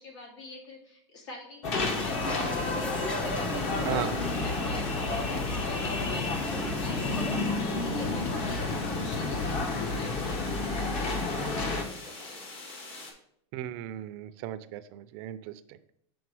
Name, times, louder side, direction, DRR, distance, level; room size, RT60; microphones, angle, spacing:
voice 1, 0.0-7.5 7.7-11.0 11.3-12.4, left 2 dB, 80° left, -2 dB, 2.6 m, -47 dB
sound 1, 1.6-11.8, left 3 dB, 45° left, 1.0 m, -30 dB
sound 2, 1.7-7.4, left 1 dB, 5° left, 0.4 m, -40 dB
sound 3, 1.8-13.1, left 3 dB, 60° left, 2.2 m, -45 dB
voice 2, 13.5-15.5, right 12 dB, 55° right, 12 dB, 0.5 m, -36 dB
7.0 x 3.7 x 4.8 m, 0.70 s
supercardioid pair, 130°, 15 cm